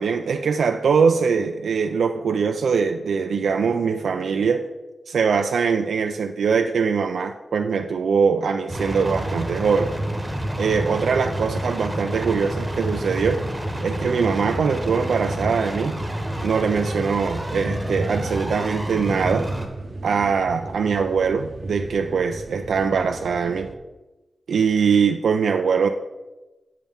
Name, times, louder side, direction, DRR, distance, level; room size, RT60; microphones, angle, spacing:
voice 1, 0.0-4.7 5.1-9.9 10.6-13.4 13.8-16.0 16.4-19.5 20.0-23.7 24.5-25.9, right 5 dB, 90° right, 5 dB, 0.3 m, -22 dB
sound 1, 8.7-19.7, right 1 dB, 10° right, 0.9 m, -28 dB
sound 2, 18.0-23.8, right 2 dB, 40° right, 0.6 m, -36 dB
7.3 x 7.1 x 3.5 m, 1.1 s
wide cardioid pair, 140°, 0 cm